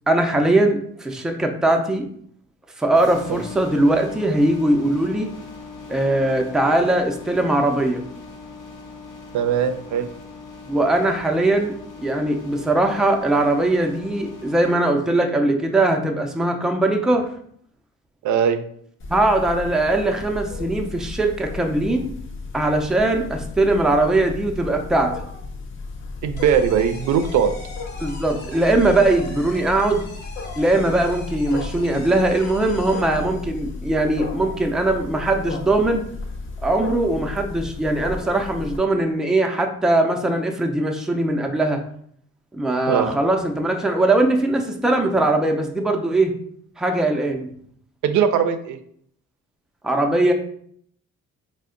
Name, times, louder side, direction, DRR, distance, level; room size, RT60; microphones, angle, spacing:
voice 1, 0.1-2.1 2.8-5.3 5.9-8.0 10.7-17.3 19.1-22.1 22.5-25.1 28.0-30.0 30.6-36.0 36.6-41.8 42.5-46.3 46.8-47.5 49.8-50.3, right 2 dB, ahead, 3 dB, 0.4 m, -20 dB
sound 1, 2.9-14.7, left 4 dB, 90° left, 0.8 m, -40 dB
voice 2, 9.3-10.1 18.2-18.6 26.2-27.5 42.9-43.1 48.0-48.8, right 8 dB, 75° right, 9 dB, 0.4 m, -20 dB
Wild animals, 19.0-38.8, left 3 dB, 40° left, 0.6 m, -34 dB
sound 2, 26.4-33.7, left 3 dB, 65° left, 0.9 m, -42 dB
3.5 x 2.1 x 3.6 m, 0.63 s
cardioid pair, 90°, 30 cm